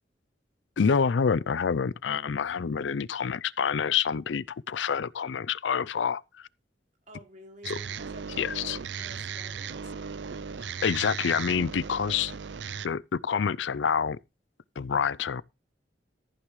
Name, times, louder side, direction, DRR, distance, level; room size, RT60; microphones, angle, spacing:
voice 1, 0.8-6.5 7.7-7.8 8.4-8.8 10.8-12.4 12.8-14.2 14.8-15.4, left 6 dB, 80° left, 0.5 m, -27 dB
voice 2, 7.1-10.1, equal, 45° right, 4.3 m, -51 dB
sound 1, 7.6-12.9, right 6 dB, 70° right, 0.5 m, -37 dB
14.5 x 9.7 x 3.2 m
head